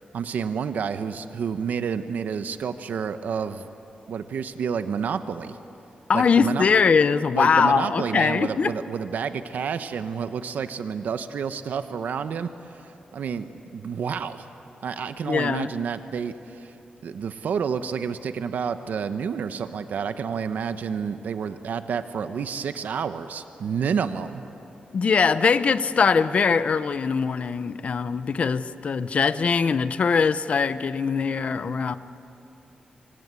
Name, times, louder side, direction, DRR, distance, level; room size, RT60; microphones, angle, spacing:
voice 1, 0.1-3.7 4.1-5.6 6.1-6.6 7.3-13.5 13.7-14.5 14.8-16.8 17.0-24.4, right 6 dB, 80° right, 10 dB, 0.9 m, -29 dB
voice 2, 6.1-8.7 15.3-15.7 24.9-32.0, left 5 dB, 50° left, 13 dB, 0.8 m, -22 dB
26.5 x 24.5 x 8.4 m, 2.8 s
wide cardioid pair, 160°, 3 cm